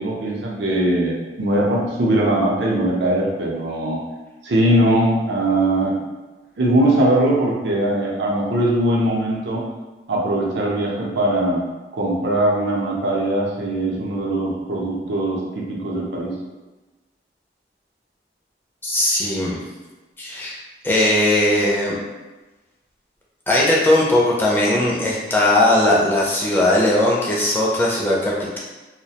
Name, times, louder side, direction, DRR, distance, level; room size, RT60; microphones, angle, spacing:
voice 1, 0.0-4.0 4.4-6.0 6.6-9.6 10.1-11.6 11.9-16.3, right 1 dB, 80° right, -3 dB, 0.5 m, -20 dB
voice 2, 18.8-19.6 20.2-20.5 20.8-22.0 23.5-28.6, left 1 dB, 10° left, -5 dB, 0.4 m, -18 dB
2.3 x 2.1 x 2.7 m, 1.2 s
head